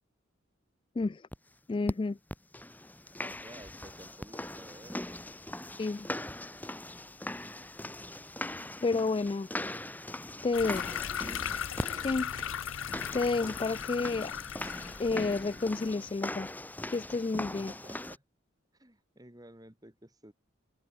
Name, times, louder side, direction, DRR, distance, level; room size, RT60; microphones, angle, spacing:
voice 1, 1.0-1.3 1.7-2.2 5.8-6.1 8.8-9.5 10.4-10.9 12.0-12.3 13.1-14.3 15.0-16.5 16.9-17.7, left 3 dB, 25° left, 0.3 m, -30 dB
sound 1, 1.3-1.4 1.9-2.0 2.3-18.2, left 1 dB, 10° left, 2.0 m, -40 dB
voice 2, 3.2-5.2 10.6-11.6 17.5-18.2 18.7-20.3, right 1 dB, 20° right, 2.7 m, -53 dB
sound 2, 10.5-15.8, left 8 dB, 75° left, 0.6 m, -37 dB
open air
head